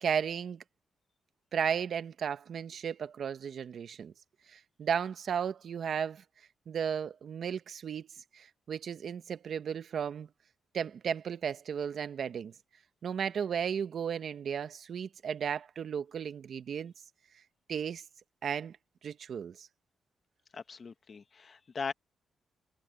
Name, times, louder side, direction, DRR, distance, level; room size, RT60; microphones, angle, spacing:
voice 1, 0.0-0.6 1.5-4.1 4.5-6.2 6.7-8.1 8.3-10.3 10.7-12.5 13.0-16.9 17.7-18.0 18.4-18.8 19.0-19.7, right 7 dB, 60° right, 1.2 m, -34 dB
voice 2, 20.5-21.9, left 5 dB, 40° left, 1.6 m, -39 dB
cardioid pair, 110°, 0 cm